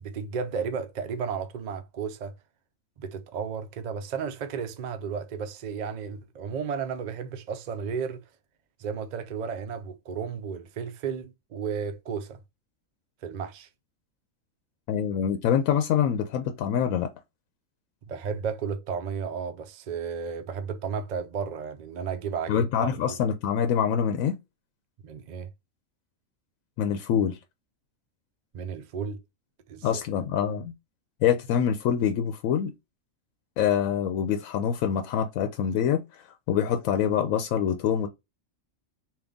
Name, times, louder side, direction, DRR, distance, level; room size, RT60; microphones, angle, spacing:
voice 1, 0.0-2.3 3.0-8.2 8.8-12.4 13.2-13.7 18.1-22.7 23.1-23.2 25.0-25.5 28.5-29.2 29.7-29.9, right 6 dB, 65° right, 0.4 m, -33 dB
voice 2, 14.9-17.1 22.5-24.4 26.8-27.4 29.8-30.7 31.2-32.7 33.6-38.1, left 8 dB, 90° left, 1.0 m, -25 dB
3.5 x 2.5 x 3.7 m
omnidirectional pair, 1.4 m